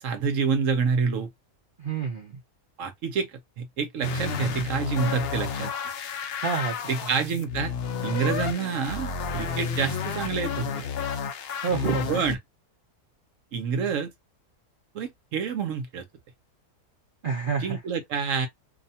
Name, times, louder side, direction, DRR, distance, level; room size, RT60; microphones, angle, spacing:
voice 1, 0.0-1.3 2.8-5.7 6.9-7.7 8.0-10.8 12.1-12.4 13.5-14.1 14.9-16.0 17.6-18.5, right 5 dB, 65° right, 0.9 m, -28 dB
voice 2, 1.8-2.4 6.4-6.8 11.6-12.1 17.2-17.8, right 5 dB, 85° right, 0.4 m, -28 dB
sound 1, 4.0-12.4, left 6 dB, 80° left, 0.5 m, -31 dB
2.7 x 2.2 x 2.6 m
omnidirectional pair, 1.7 m